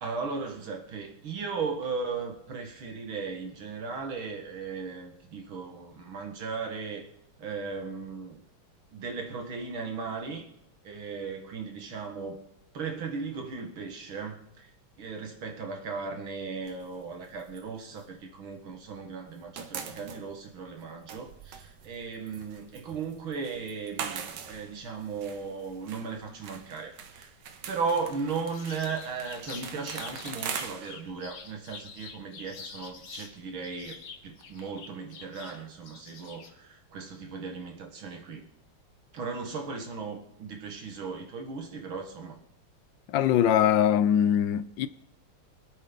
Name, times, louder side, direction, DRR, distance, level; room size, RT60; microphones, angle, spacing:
voice 1, 0.0-7.1 7.4-8.4 8.9-10.5 10.8-12.4 12.7-27.3 27.7-34.0 34.2-38.5 39.1-42.4, right 5 dB, 80° right, 2.6 m, -36 dB
sound 1, 16.7-18.9 19.2-34.6, right 7 dB, 65° right, 1.6 m, -43 dB
sound 2, 28.5-33.3 33.6-36.5, left 5 dB, 50° left, 1.5 m, -46 dB
voice 2, 43.1-44.9, left 10 dB, 75° left, 1.3 m, -22 dB
24.5 x 8.7 x 4.0 m
omnidirectional pair, 2.2 m